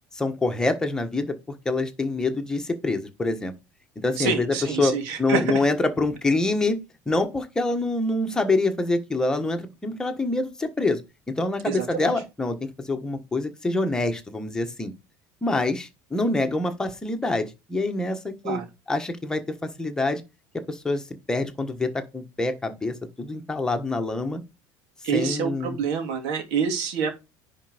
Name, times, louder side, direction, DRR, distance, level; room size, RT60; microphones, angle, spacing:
voice 1, 0.1-1.3 1.6-3.5 4.0-6.8 7.1-11.0 11.3-14.9 15.4-18.6 18.9-19.4 19.8-20.2 20.7-24.4 25.1-25.8, left 2 dB, 10° left, 1.3 m, -26 dB
voice 2, 4.2-5.6 11.7-12.1 18.4-18.6 25.0-27.1, right 6 dB, 70° right, 3.0 m, -27 dB
10.5 x 4.5 x 5.0 m
cardioid pair, 180°, 9 cm